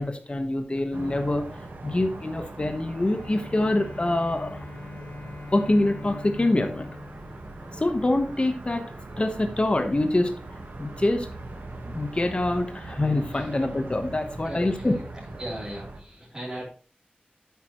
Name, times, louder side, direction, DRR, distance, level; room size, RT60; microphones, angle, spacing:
voice 1, 0.0-1.4 1.8-4.7 5.5-6.9 7.7-8.8 9.2-10.3 10.8-11.3 11.9-15.0, left 2 dB, 35° left, 6 dB, 1.1 m, -25 dB
sound 1, 0.9-16.0, right 2 dB, 80° right, 1.5 m, -41 dB
Bowed string instrument, 2.9-8.3, left 3 dB, 60° left, 2.0 m, -42 dB
voice 2, 14.4-15.0 15.4-16.7, right 1 dB, 20° right, -7 dB, 3.4 m, -37 dB
9.4 x 8.4 x 3.1 m, 0.38 s
wide cardioid pair, 80°, 3 cm